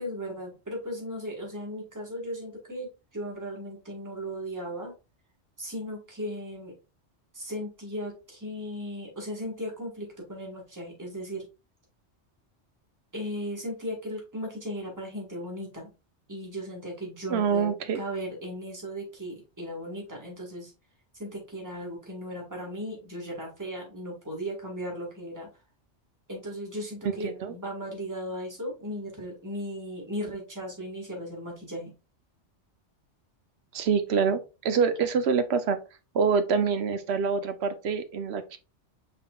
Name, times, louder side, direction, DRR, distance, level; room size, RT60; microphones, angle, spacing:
voice 1, 0.0-4.9 5.6-6.7 7.3-11.4 13.1-15.9 16.3-20.7 21.1-25.5 26.3-31.9, equal, 15° right, 1.6 m, -36 dB
voice 2, 17.3-18.0 27.0-27.5 33.7-35.8 36.1-38.6, right 6 dB, 70° right, 0.9 m, -26 dB
5.6 x 3.6 x 2.3 m
omnidirectional pair, 1.2 m